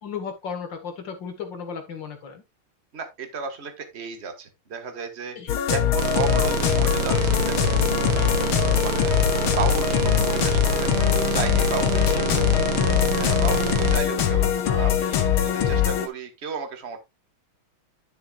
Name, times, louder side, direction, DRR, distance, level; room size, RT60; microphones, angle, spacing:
voice 1, 0.0-2.4 5.4-5.5 11.8-13.1 13.5-13.7, left 7 dB, 60° left, 2.3 m, -35 dB
voice 2, 2.9-8.3 8.7-9.2 9.5-12.2 13.2-17.0, right 5 dB, 35° right, 1.6 m, -34 dB
sound 1, 5.5-16.1, left 9 dB, 90° left, 2.0 m, -22 dB
sound 2, 6.0-14.0, right 6 dB, 70° right, 2.1 m, -27 dB
11.5 x 6.9 x 2.4 m
omnidirectional pair, 2.3 m